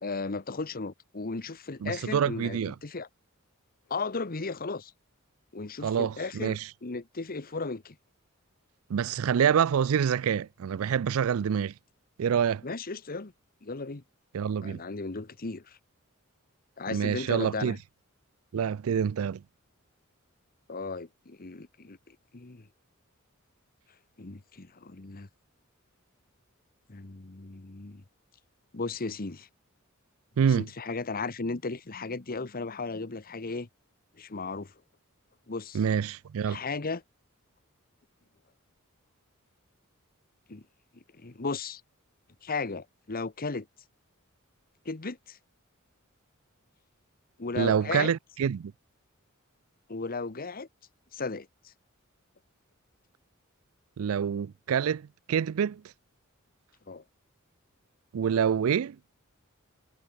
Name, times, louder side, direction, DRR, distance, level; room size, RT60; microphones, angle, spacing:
voice 1, 0.0-3.1 3.9-4.9 5.5-8.0 12.6-13.3 13.6-14.0 14.6-15.8 16.8-17.8 20.7-22.7 24.2-25.3 26.9-28.0 28.7-29.5 30.6-33.7 34.2-34.7 35.5-35.8 36.5-37.0 40.5-40.6 40.9-41.8 42.4-43.7 44.8-45.4 47.4-48.1 49.9-50.7 51.1-51.7 56.9-57.0, left 3 dB, 45° left, 1.1 m, -35 dB
voice 2, 1.8-2.7 5.8-6.7 8.9-11.7 12.2-12.6 14.3-14.8 16.9-17.8 18.5-19.4 30.4-30.7 35.7-36.6 47.6-48.7 54.0-55.8 58.1-59.0, right 7 dB, 75° right, 0.4 m, -27 dB
head